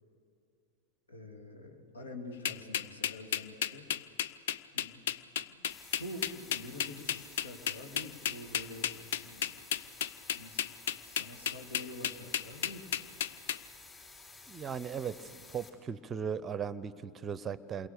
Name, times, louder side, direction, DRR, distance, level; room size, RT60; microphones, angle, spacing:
voice 1, 1.1-3.9 4.7-5.0 5.5-9.0 9.2-9.5 10.3-10.7 11.1-12.9, left 1 dB, 75° left, 4 dB, 2.8 m, -46 dB
sound 1, 2.5-13.6, left 9 dB, 55° left, 0.6 m, -33 dB
sound 2, 5.7-15.7, left 3 dB, 25° left, 4.7 m, -53 dB
voice 2, 14.5-17.9, right 7 dB, 20° right, 17 dB, 0.7 m, -37 dB
28.5 x 22.5 x 6.7 m, 2.5 s
figure-of-eight pair, 90°, 0 cm